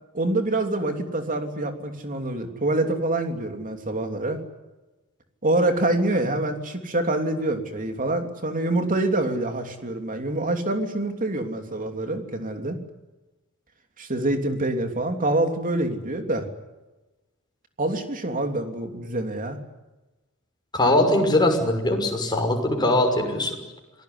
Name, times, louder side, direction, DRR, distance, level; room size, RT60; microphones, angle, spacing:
voice 1, 0.1-4.4 5.4-12.8 14.0-16.5 17.8-19.6, right 2 dB, 40° right, 5 dB, 3.1 m, -26 dB
voice 2, 20.7-23.6, left 1 dB, 20° left, 2 dB, 6.1 m, -21 dB
27.5 x 19.0 x 9.7 m, 1.1 s
head